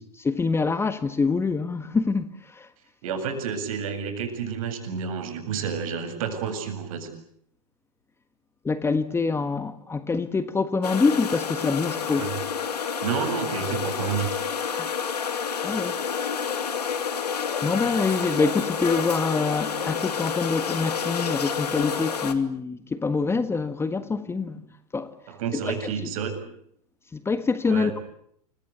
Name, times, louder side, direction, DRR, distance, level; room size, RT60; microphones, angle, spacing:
voice 1, 0.2-2.7 8.6-12.3 14.8-14.9 15.6-16.0 17.6-24.7 24.9-25.1 25.5-26.1 27.1-28.0, left 4 dB, 10° left, 1.5 m, -25 dB
voice 2, 3.0-7.1 12.1-12.3 13.0-14.4 25.3-26.4 27.6-27.9, right 7 dB, 60° right, 7.9 m, -30 dB
sound 1, 10.8-22.3, left 6 dB, 80° left, 3.0 m, -29 dB
29.0 x 24.0 x 8.1 m
hypercardioid pair, 105°, 20 cm